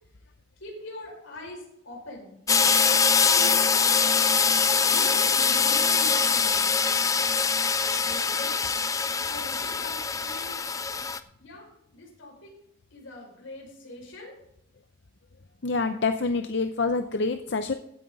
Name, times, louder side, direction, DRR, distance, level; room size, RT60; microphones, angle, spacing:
voice 1, 0.6-2.3 3.2-3.8 4.9-6.6 7.8-8.6 9.3-10.6 11.4-12.5 12.9-14.4, left 2 dB, 85° left, -1 dB, 5.9 m, -42 dB
sound 1, 2.5-11.2, left 5 dB, 15° left, 0.4 m, -23 dB
voice 2, 15.6-17.7, left 3 dB, 60° left, 8 dB, 0.6 m, -27 dB
15.5 x 9.5 x 4.0 m, 0.77 s
head